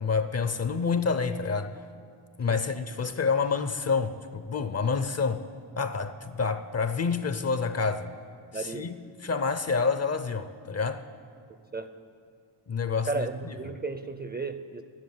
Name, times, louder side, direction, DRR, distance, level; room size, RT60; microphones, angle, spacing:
voice 1, 0.0-1.8 2.4-5.5 5.8-8.1 8.5-8.9 9.2-11.0 12.7-13.5, left 5 dB, 30° left, 0.5 m, -28 dB
voice 2, 8.5-8.9 11.5-11.9 13.1-14.8, right 3 dB, 20° right, 0.5 m, -34 dB
10.5 x 7.5 x 9.5 m
cardioid pair, 80°, 49 cm